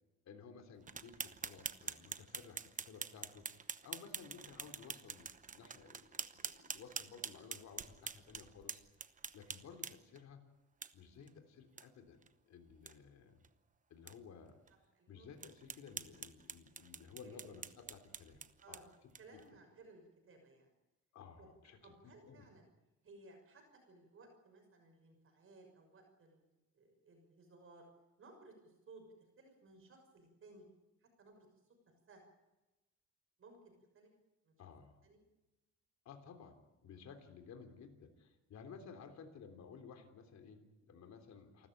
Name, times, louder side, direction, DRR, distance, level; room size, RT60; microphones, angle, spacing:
voice 1, 0.2-3.5 3.8-8.8 9.3-10.4 10.9-13.4 13.9-14.6 15.1-18.4 18.7-19.4 21.1-22.5 34.6-35.0 36.0-41.7, left 6 dB, 65° left, 6 dB, 3.4 m, -56 dB
sound 1, 0.9-10.2 10.8-10.9 11.3-11.4 11.8-11.9 12.2-12.3 12.7-12.9 13.4-13.5 14.1-14.2 14.7-14.8 15.4-19.4, right 6 dB, 25° right, 0.9 m, -46 dB
voice 2, 14.9-15.3 17.2-17.4 18.6-18.9 19.2-20.7 21.4-21.5 21.8-22.6 23.0-26.5 26.7-27.9 28.2-29.1 29.4-30.7 31.0-31.5 32.1-32.2 33.4-34.1 34.4-34.5 35.0-35.2 36.9-37.0 41.1-41.2, right 3 dB, 45° right, 3 dB, 6.2 m, -60 dB
28.0 x 13.5 x 8.9 m, 1.1 s
cardioid pair, 130°, 30 cm